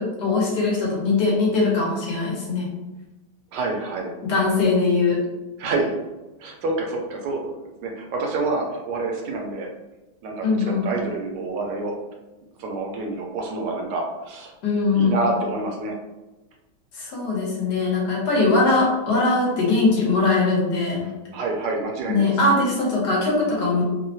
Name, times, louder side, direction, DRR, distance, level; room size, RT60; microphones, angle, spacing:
voice 1, 0.0-2.7 4.2-5.2 10.4-10.9 14.6-15.2 16.9-21.1 22.1-23.8, left 3 dB, 70° left, -3 dB, 1.5 m, -21 dB
voice 2, 3.5-4.1 5.6-5.9 6.4-7.5 7.8-9.7 10.2-11.9 12.6-14.5 14.9-16.0 21.3-22.3, right 2 dB, 85° right, 1 dB, 1.3 m, -27 dB
3.7 x 2.1 x 2.7 m, 1.1 s
omnidirectional pair, 1.8 m